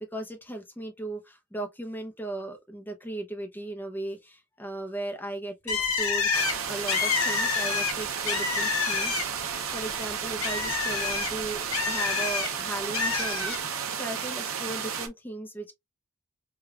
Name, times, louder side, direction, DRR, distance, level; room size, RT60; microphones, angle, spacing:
voice 1, 0.1-15.7, right 1 dB, 10° left, 0.6 m, -37 dB
Bird, 5.7-9.5 9.9-12.5 12.9-13.6, left 5 dB, 85° left, 1.1 m, -28 dB
sound 1, 6.3-15.1, right 7 dB, 80° right, 0.7 m, -33 dB
4.8 x 2.3 x 2.3 m
head